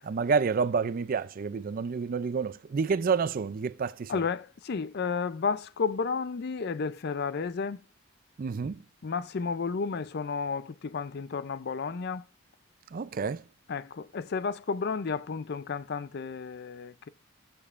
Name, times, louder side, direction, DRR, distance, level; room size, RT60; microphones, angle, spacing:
voice 1, 0.0-4.2 8.4-8.8 12.9-13.4, right 5 dB, 45° right, 0.4 m, -29 dB
voice 2, 4.1-7.8 9.0-12.2 13.7-17.1, left 5 dB, 50° left, 0.4 m, -32 dB
13.5 x 6.9 x 2.5 m
head